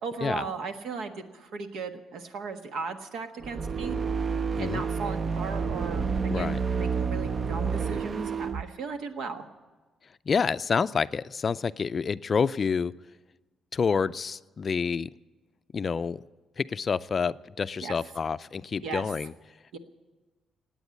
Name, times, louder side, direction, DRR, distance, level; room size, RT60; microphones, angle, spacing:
voice 1, 0.0-4.0 4.6-9.4 17.8-18.0 18.8-19.0 19.7-19.8, right 4 dB, 80° right, 7 dB, 1.4 m, -36 dB
sound 1, 3.4-8.6, right 5 dB, 40° right, 0.5 m, -29 dB
voice 2, 10.3-12.9 13.7-15.1 15.7-16.2 16.6-19.3, left 5 dB, 40° left, 14 dB, 0.4 m, -28 dB
17.0 x 9.1 x 8.4 m, 1.2 s
cardioid pair, 105°, 0 cm